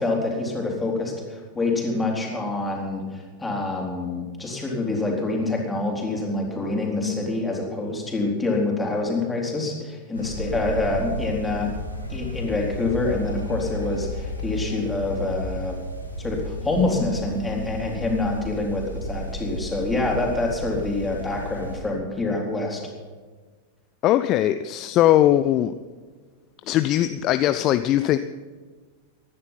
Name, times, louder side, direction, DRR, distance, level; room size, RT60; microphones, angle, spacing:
voice 1, 0.0-11.7 12.1-15.8 16.2-22.8, left 2 dB, 10° left, -1 dB, 3.9 m, -26 dB
sound 1, 10.1-21.8, equal, 85° left, 2.0 m, -33 dB
voice 2, 24.0-25.7 26.7-28.2, left 13 dB, 35° left, 11 dB, 0.5 m, -20 dB
16.0 x 11.0 x 5.8 m, 1.4 s
figure-of-eight pair, 90°, 0 cm